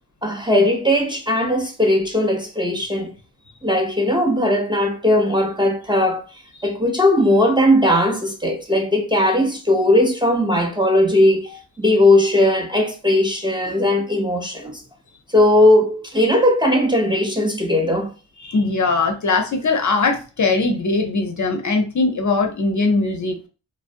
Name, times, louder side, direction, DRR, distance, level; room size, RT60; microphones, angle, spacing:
voice 1, 0.2-3.1 3.6-6.2 6.6-11.5 11.8-14.8 15.3-18.1, left 1 dB, 10° right, 0.6 m, -18 dB
voice 2, 18.4-23.4, left 3 dB, 40° left, 0.6 m, -20 dB
2.4 x 2.0 x 2.5 m
supercardioid pair, 45°, 46 cm